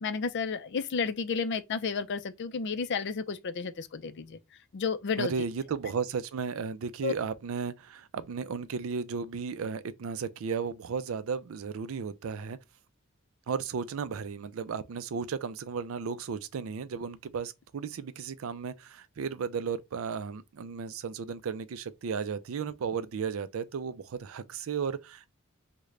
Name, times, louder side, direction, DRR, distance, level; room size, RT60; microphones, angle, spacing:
voice 1, 0.0-4.4 4.7-5.3 7.0-7.1, left 5 dB, 55° left, 0.4 m, -32 dB
voice 2, 5.2-12.6 13.5-25.3, right 6 dB, 70° right, 0.4 m, -34 dB
3.7 x 2.2 x 3.2 m
head